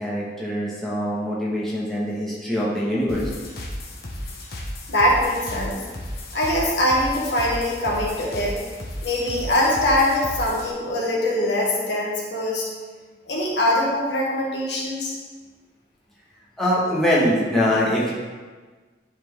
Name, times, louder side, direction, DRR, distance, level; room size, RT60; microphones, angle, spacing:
voice 1, 0.0-3.3 16.6-18.1, equal, ahead, -8 dB, 1.3 m, -23 dB
sound 1, 3.1-10.7, left 1 dB, 55° left, 1.0 m, -34 dB
voice 2, 4.9-5.8 6.3-8.6 9.0-12.7 13.3-15.1, left 1 dB, 75° left, -3 dB, 1.5 m, -22 dB
10.0 x 4.3 x 3.5 m, 1.4 s
head